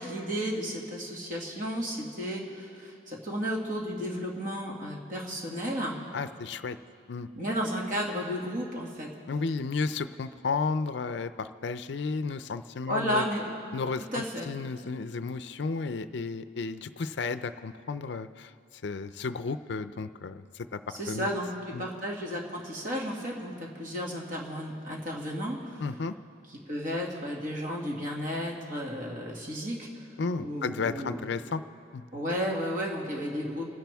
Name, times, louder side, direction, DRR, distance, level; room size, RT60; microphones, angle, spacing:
voice 1, 0.0-6.0 7.4-9.1 12.9-13.5 14.1-14.5 20.9-25.8 26.7-29.9 30.4-31.2 32.1-33.7, equal, 45° right, -2 dB, 2.2 m, -33 dB
voice 2, 6.1-6.8 7.1-7.3 9.3-13.2 13.7-18.5 18.8-20.8 21.1-21.3 21.7-21.9 25.8-26.1 30.2-31.6 31.9-32.0, left 4 dB, 60° left, 12 dB, 0.5 m, -33 dB
29.0 x 10.5 x 3.5 m, 2.4 s
head